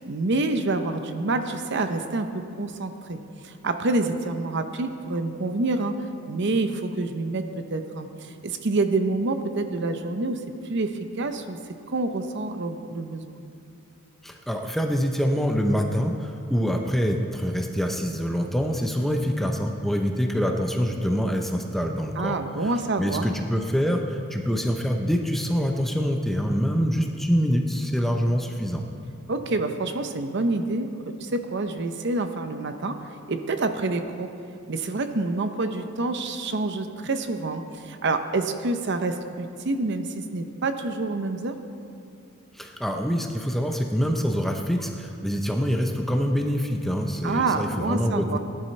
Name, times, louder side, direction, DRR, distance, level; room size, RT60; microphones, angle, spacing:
voice 1, 0.0-2.3 2.5-5.9 6.3-10.4 10.7-11.6 11.9-13.4 22.2-23.3 29.3-33.0 33.3-34.3 34.7-41.5 47.2-48.4, right 2 dB, 55° right, 8 dB, 0.7 m, -27 dB
voice 2, 14.2-22.4 22.6-22.7 23.0-28.8 42.5-48.4, equal, ahead, 2 dB, 0.6 m, -25 dB
18.0 x 11.0 x 3.2 m, 2.6 s
head